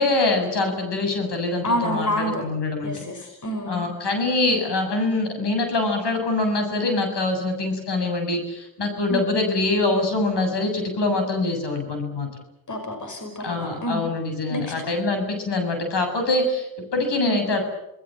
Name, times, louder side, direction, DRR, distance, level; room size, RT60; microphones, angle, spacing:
voice 1, 0.0-2.9 3.7-12.3 13.4-17.6, left 2 dB, 60° left, 5 dB, 7.4 m, -24 dB
voice 2, 1.6-2.4 2.8-3.9 9.1-9.3 12.7-14.0 14.5-14.9 17.3-17.4, equal, 40° left, 5 dB, 5.9 m, -28 dB
28.0 x 20.0 x 7.7 m, 0.89 s
cardioid pair, 65°, 47 cm